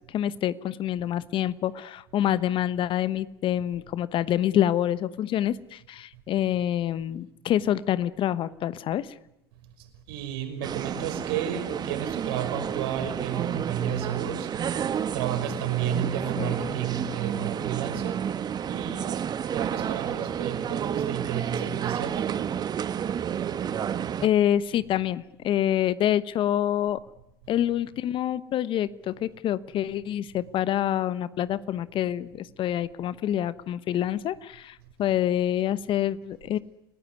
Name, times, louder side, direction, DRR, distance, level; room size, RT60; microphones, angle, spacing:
voice 1, 0.1-9.1 16.4-16.5 24.2-27.0 27.5-36.6, left 11 dB, 40° left, 17 dB, 1.1 m, -26 dB
voice 2, 9.8-19.2 19.5-22.6, right 9 dB, 65° right, 6 dB, 5.6 m, -32 dB
sound 1, 10.6-24.3, right 8 dB, 35° right, 1.3 m, -30 dB
30.0 x 18.0 x 9.8 m, 0.89 s
hypercardioid pair, 80°, 13 cm